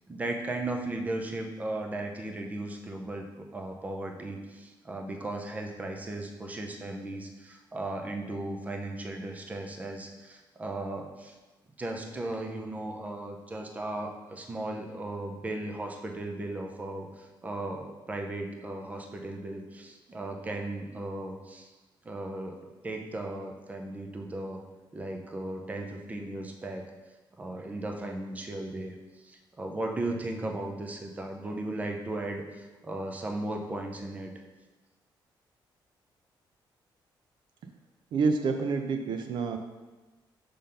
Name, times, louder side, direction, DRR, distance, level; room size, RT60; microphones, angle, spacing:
voice 1, 0.1-11.3 11.8-21.7 22.0-22.6 22.8-24.6 24.9-26.9 27.4-28.9 29.2-34.3, right 2 dB, 20° right, 3 dB, 0.6 m, -36 dB
voice 2, 38.1-39.6, right 4 dB, 65° right, 6 dB, 0.5 m, -28 dB
5.1 x 3.9 x 5.5 m, 1.2 s
cardioid pair, 160°, 9 cm